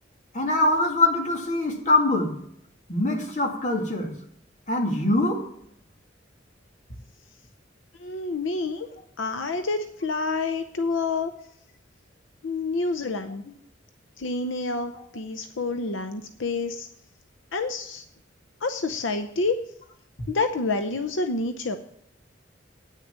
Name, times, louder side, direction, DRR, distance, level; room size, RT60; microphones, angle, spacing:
voice 1, 0.3-2.3 2.9-4.1 4.7-5.4 8.5-8.8, left 2 dB, 40° left, 1 dB, 2.2 m, -23 dB
voice 2, 8.0-8.9 9.2-11.3 12.4-13.4 14.2-16.9 17.5-18.0 18.6-19.6 20.3-21.8, left 3 dB, 85° left, 8 dB, 0.7 m, -28 dB
9.2 x 6.5 x 7.4 m, 0.70 s
head